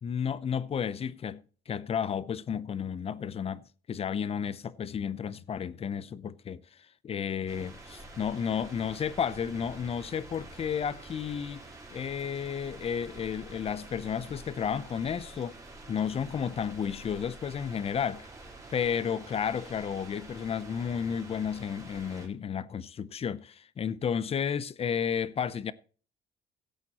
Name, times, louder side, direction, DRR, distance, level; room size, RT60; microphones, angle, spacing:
voice 1, 0.0-1.4 1.7-3.6 3.9-6.6 7.0-11.6 11.9-15.5 15.9-18.3 18.7-25.7, left 7 dB, 35° left, 0.7 m, -32 dB
sound 1, 7.5-22.3, right 2 dB, 20° right, 3.9 m, -48 dB
16.5 x 8.2 x 3.0 m
cardioid pair, 110°, 17 cm